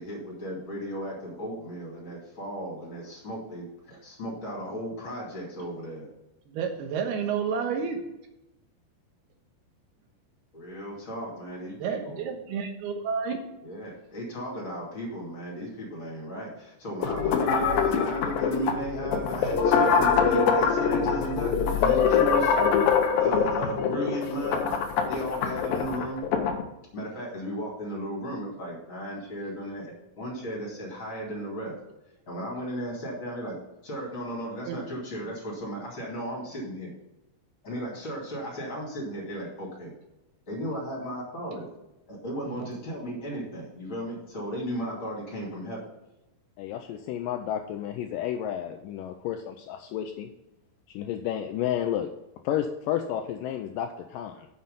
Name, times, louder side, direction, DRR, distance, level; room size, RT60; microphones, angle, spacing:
voice 1, 0.0-6.1 10.5-12.2 13.6-22.7 23.2-24.8 25.1-26.3 26.9-31.7 32.3-33.6 33.8-36.9 37.6-39.9 40.5-41.7 42.1-45.8, right 1 dB, 35° left, -3 dB, 3.1 m, -35 dB
voice 2, 6.5-8.0 11.8-13.4 34.7-34.8 42.5-42.7, right 6 dB, 85° right, 5 dB, 3.1 m, -30 dB
sound 1, 17.0-26.6, left 6 dB, 75° left, 2.6 m, -24 dB
voice 3, 46.6-50.3 50.9-52.1 52.4-54.5, left 10 dB, 90° left, 6 dB, 1.9 m, -31 dB
7.4 x 6.4 x 5.5 m, 0.92 s
omnidirectional pair, 4.5 m